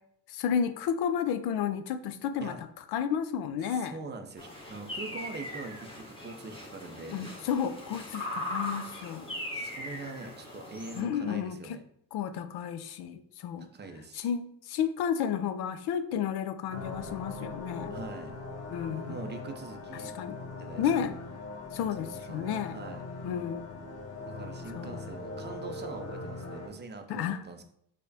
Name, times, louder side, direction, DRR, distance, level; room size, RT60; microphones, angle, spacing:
voice 1, 0.3-3.9 7.1-9.3 11.0-11.8 12.1-13.7 14.1-18.0 18.7-19.2 20.2-20.4 20.8-21.2 21.7-22.9 23.2-23.8 24.7-25.0 27.1-27.4, left 8 dB, 60° left, 11 dB, 0.5 m, -32 dB
voice 2, 3.6-7.2 9.5-11.8 13.7-14.3 17.9-18.4 19.1-20.1 20.4-21.1 21.8-23.0 24.3-27.6, right 3 dB, 25° right, 5 dB, 0.5 m, -43 dB
sound 1, 4.4-11.0, left 1 dB, 10° left, 0.9 m, -39 dB
sound 2, 16.7-26.7, left 3 dB, 35° left, 0.9 m, -41 dB
4.7 x 2.1 x 2.7 m, 0.70 s
hypercardioid pair, 65°, 45 cm